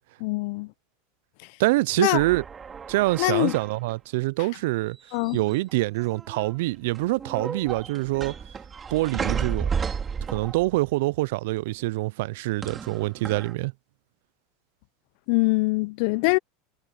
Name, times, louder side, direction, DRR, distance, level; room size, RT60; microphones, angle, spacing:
voice 1, 0.2-0.7 2.0-2.2 3.2-3.6 5.1-5.4 15.3-16.4, left 26 dB, 65° left, 0.8 m, -23 dB
voice 2, 1.6-2.4 2.9-5.0 5.3-8.4 8.9-9.7 10.3-13.7, right 20 dB, 70° right, 0.6 m, -25 dB
sound 1, 2.2-3.9 5.1-5.7 6.0-6.6 7.0-10.9 12.6-13.5, right 6 dB, 25° right, 3.7 m, -33 dB
hypercardioid pair, 100°, 0 cm